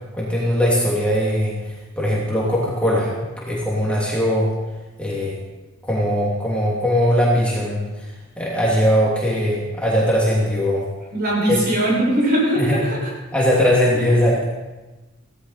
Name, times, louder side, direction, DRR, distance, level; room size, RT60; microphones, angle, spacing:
voice 1, 0.1-1.6 2.0-4.5 5.0-5.4 5.8-10.9 11.5-11.6 12.6-12.9 13.3-14.4, equal, 5° left, -6 dB, 2.9 m, -20 dB
voice 2, 11.1-13.1 13.9-14.0, right 1 dB, 50° right, -4 dB, 7.2 m, -20 dB
17.0 x 15.5 x 4.3 m, 1.2 s
head